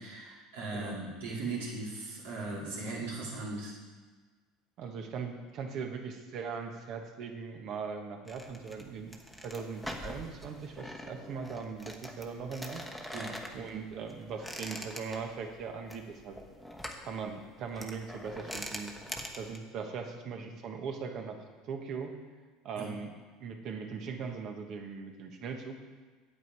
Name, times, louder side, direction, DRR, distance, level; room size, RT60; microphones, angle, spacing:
voice 1, 0.0-3.7 13.1-13.3 22.8-22.9, right 3 dB, 80° right, -5 dB, 2.9 m, -38 dB
voice 2, 4.8-9.1 9.4-12.8 13.5-16.4 17.0-18.9 19.4-21.4 21.6-22.1 22.6-23.1 23.4-25.8, right 5 dB, 55° right, 4 dB, 1.4 m, -39 dB
sound 1, 8.3-19.6, equal, ahead, 1.1 m, -44 dB
8.4 x 8.3 x 4.7 m, 1.4 s
hypercardioid pair, 85°, 0 cm